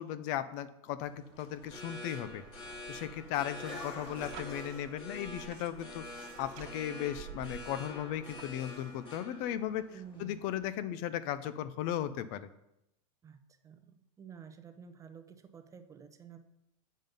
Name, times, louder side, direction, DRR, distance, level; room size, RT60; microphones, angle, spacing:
voice 1, 0.0-2.4 2.9-9.9 10.2-12.5, left 11 dB, 50° left, 14 dB, 0.5 m, -36 dB
sound 1, 1.0-10.6, left 2 dB, 30° left, 2.4 m, -46 dB
sound 2, 2.2-9.0, right 10 dB, 60° right, 1.2 m, -52 dB
voice 2, 9.9-10.5 13.2-16.4, right 7 dB, 20° right, 8 dB, 0.7 m, -51 dB
7.4 x 5.4 x 5.3 m, 0.85 s
supercardioid pair, 135°, 18 cm